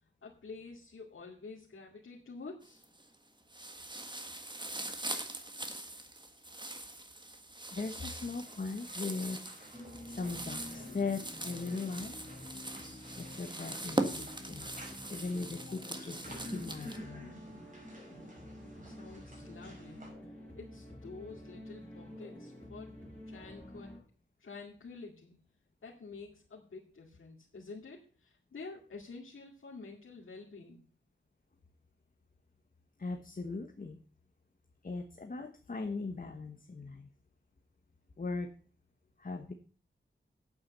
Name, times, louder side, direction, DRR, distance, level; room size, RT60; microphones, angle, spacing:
voice 1, 0.0-2.8 18.8-20.1 20.5-23.0 23.3-23.9 24.4-25.4 25.8-30.8, left 4 dB, 80° left, -5 dB, 2.4 m, -49 dB
sound 1, 2.6-3.1 3.5-17.0, right 2 dB, 20° right, 1.5 m, -41 dB
voice 2, 7.7-12.2 13.1-14.7 15.1-17.3 33.0-34.0 34.8-37.1 38.2-38.5 39.2-39.5, left 3 dB, 45° left, 6 dB, 1.2 m, -39 dB
sound 2, 8.4-20.1, equal, 40° right, 5.8 m, -52 dB
sound 3, 9.7-24.0, left 1 dB, 10° left, 5.4 m, -49 dB
8.7 x 8.7 x 6.8 m, 0.40 s
wide cardioid pair, 95°, 20 cm